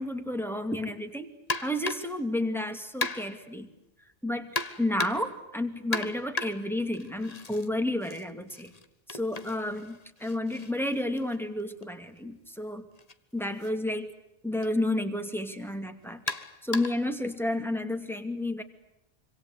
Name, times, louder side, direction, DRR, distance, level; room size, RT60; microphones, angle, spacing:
voice 1, 0.0-1.3 1.6-3.7 4.2-4.5 4.8-8.7 9.1-12.9 13.3-14.1 14.4-16.2 16.6-18.6, left 1 dB, ahead, 5 dB, 2.4 m, -31 dB
sound 1, 1.5-2.2 3.0-3.5 4.5-5.4 5.9-7.7 8.0-11.9 13.0-13.1 13.6-13.7 14.6-14.8 16.3-17.1, left 3 dB, 35° left, 1.4 m, -36 dB
26.5 x 26.0 x 8.3 m, 0.88 s
omnidirectional pair, 1.1 m